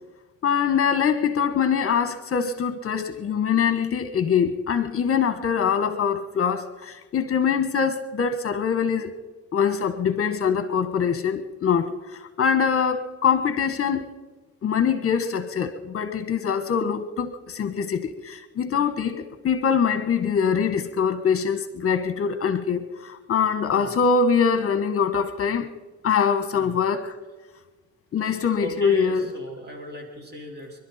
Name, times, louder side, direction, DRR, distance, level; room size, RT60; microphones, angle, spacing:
voice 1, 0.4-9.1 9.5-14.1 14.6-25.7 26.0-27.2 28.1-29.2, left 6 dB, 50° left, 10 dB, 1.4 m, -23 dB
voice 2, 26.5-26.8 28.2-30.8, right 2 dB, 35° right, 1 dB, 4.5 m, -37 dB
26.0 x 12.0 x 4.3 m, 1.2 s
cardioid pair, 90°, 30 cm